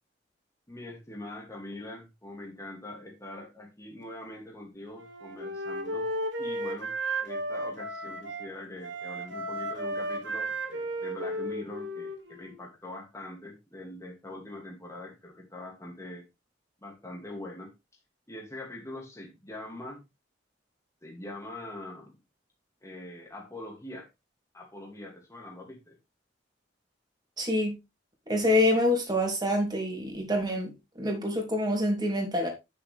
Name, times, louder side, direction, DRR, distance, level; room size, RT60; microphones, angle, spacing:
voice 1, 0.7-6.1 6.4-6.9 7.2-16.2 16.8-17.7 18.3-20.0 21.0-22.2 22.8-24.1 24.5-26.0, left 1 dB, 15° left, 2.4 m, -43 dB
Wind instrument woodwind instrument, 4.9-8.5 8.8-12.6, right 1 dB, 80° right, 2.6 m, -34 dB
voice 2, 27.4-27.8 28.3-30.7 31.0-32.5, left 1 dB, 25° right, 3.0 m, -26 dB
9.4 x 6.8 x 3.4 m
head